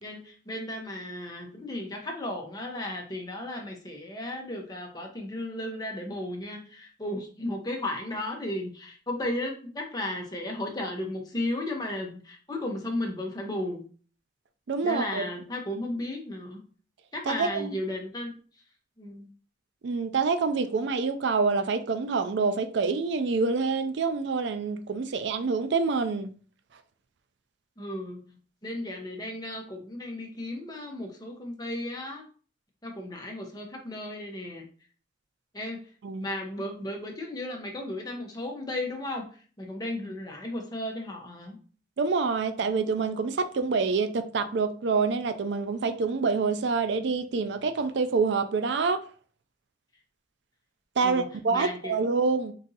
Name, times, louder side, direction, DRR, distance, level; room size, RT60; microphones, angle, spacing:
voice 1, 0.0-13.8 14.8-16.6 17.1-18.3 19.0-19.3 27.8-28.3 28.6-32.3 32.8-34.7 35.5-35.8 36.2-39.3 39.6-41.6 51.0-52.0, left 1 dB, 20° left, 0.8 m, -34 dB
voice 2, 14.7-15.2 17.3-17.8 19.8-26.3 36.0-36.3 42.0-49.0 51.0-52.5, right 4 dB, 70° right, 0.4 m, -26 dB
3.9 x 2.6 x 3.9 m
head